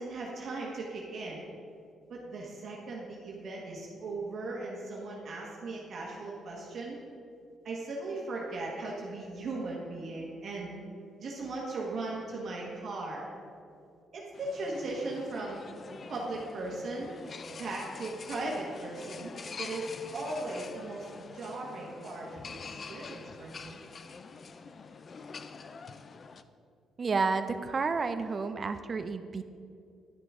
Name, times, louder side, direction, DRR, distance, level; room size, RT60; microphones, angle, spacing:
voice 1, 0.0-1.5 2.1-7.0 7.6-10.8 11.2-13.3 14.1-15.6 16.1-17.1 17.6-19.3 19.6-23.8, right 2 dB, 60° right, -3 dB, 1.3 m, -38 dB
sound 1, 14.3-26.4, left 5 dB, 45° left, 0.4 m, -46 dB
voice 2, 27.0-29.4, right 4 dB, 40° right, 10 dB, 0.4 m, -30 dB
11.0 x 5.8 x 3.7 m, 2.4 s
cardioid pair, 90°, 0 cm